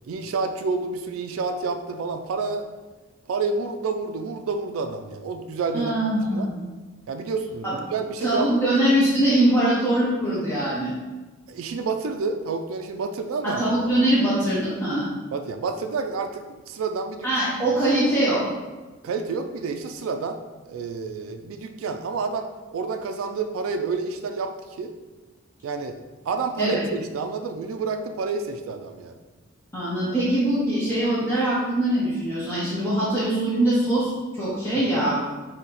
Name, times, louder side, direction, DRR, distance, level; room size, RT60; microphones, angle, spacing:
voice 1, 0.1-2.7 3.3-6.5 7.1-8.8 11.5-13.6 15.3-17.3 19.0-20.4 20.7-24.9 25.6-26.0 26.3-29.2, right 4 dB, 80° right, 6 dB, 0.3 m, -29 dB
voice 2, 5.7-6.6 7.6-7.8 8.2-10.9 13.4-15.1 17.2-18.4 26.6-26.8 29.7-35.2, right 1 dB, 10° left, -9 dB, 0.9 m, -22 dB
4.1 x 2.8 x 4.0 m, 1.2 s
head